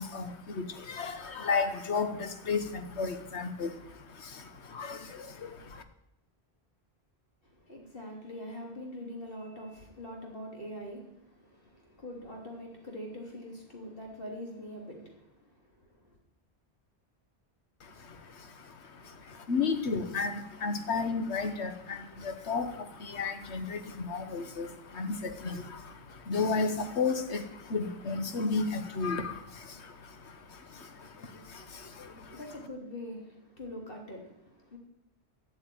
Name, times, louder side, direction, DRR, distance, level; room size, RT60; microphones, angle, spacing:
voice 1, 0.0-5.8 17.8-32.4, left 4 dB, 80° left, 1.4 m, -34 dB
voice 2, 7.4-16.2 31.4-34.8, equal, 55° left, 3.5 m, -44 dB
13.0 x 7.0 x 9.4 m
omnidirectional pair, 1.1 m